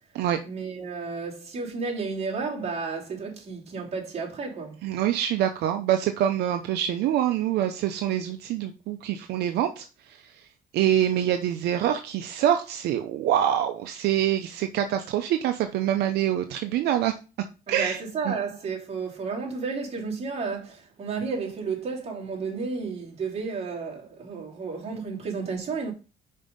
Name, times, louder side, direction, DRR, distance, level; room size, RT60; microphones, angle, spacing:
voice 1, 0.4-4.8 17.7-25.9, right 4 dB, 40° right, 2.9 m, -32 dB
voice 2, 4.8-10.2 10.7-17.1 17.7-18.0 18.2-18.4, right 11 dB, 75° right, 0.7 m, -25 dB
5.5 x 5.3 x 5.3 m
cardioid pair, 110°, 17 cm